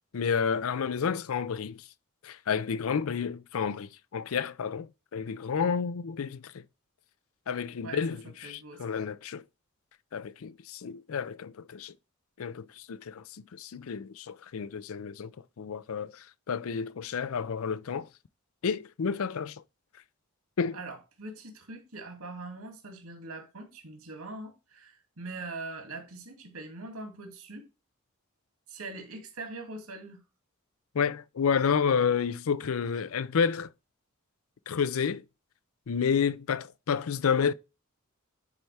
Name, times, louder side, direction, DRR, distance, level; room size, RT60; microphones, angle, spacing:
voice 1, 0.1-1.8 2.2-6.6 7.5-9.4 10.1-11.9 12.4-15.3 15.6-18.1 18.6-19.6 20.6-20.8 30.9-33.7 34.7-35.2 35.9-37.5, left 6 dB, 75° left, 0.5 m, -30 dB
voice 2, 8.4-9.0 20.7-27.6 28.7-30.2, right 3 dB, 85° right, 2.4 m, -42 dB
9.7 x 4.6 x 3.4 m
head